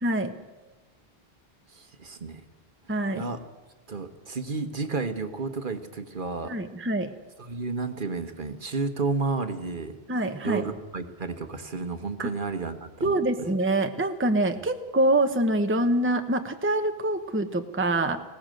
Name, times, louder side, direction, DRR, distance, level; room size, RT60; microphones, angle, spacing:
voice 1, 0.0-0.3 2.9-3.2 6.5-7.1 10.1-10.6 12.2-12.3 13.0-18.2, right 1 dB, 10° right, 6 dB, 1.0 m, -25 dB
voice 2, 1.7-2.4 3.1-3.4 3.9-6.5 7.4-10.0 10.4-13.5, right 4 dB, 55° right, 8 dB, 1.4 m, -32 dB
20.0 x 17.5 x 7.7 m, 1.2 s
omnidirectional pair, 1.1 m